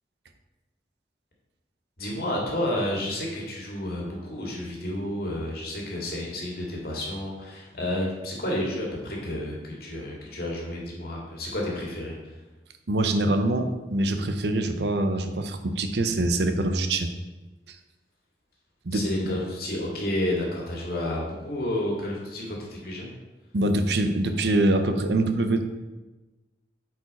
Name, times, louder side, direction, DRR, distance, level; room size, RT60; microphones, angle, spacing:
voice 1, 2.0-12.2 18.9-23.1, left 1 dB, 55° left, -2 dB, 2.1 m, -30 dB
voice 2, 12.9-17.1 17.7-17.8 18.8-19.1 23.5-25.6, right 2 dB, 70° right, 7 dB, 0.7 m, -24 dB
8.6 x 4.7 x 4.2 m, 1.1 s
head